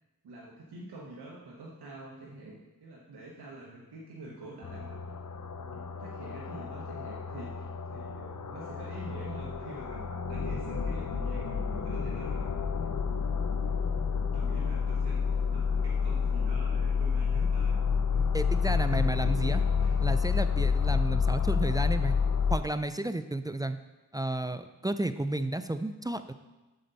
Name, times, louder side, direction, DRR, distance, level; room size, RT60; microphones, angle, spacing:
voice 1, 0.2-5.0 5.5-12.5 12.8-13.2 13.6-14.0 14.3-17.8 18.1-18.3 18.6-20.0, right 2 dB, 85° right, -3 dB, 1.1 m, -46 dB
sound 1, 4.6-22.6, left 6 dB, 50° left, 0.7 m, -29 dB
voice 2, 18.3-19.6 20.0-22.2 22.5-23.8 24.1-26.3, right 1 dB, 10° right, 10 dB, 0.3 m, -32 dB
7.5 x 6.8 x 4.0 m, 1.1 s
cardioid pair, 50°, 38 cm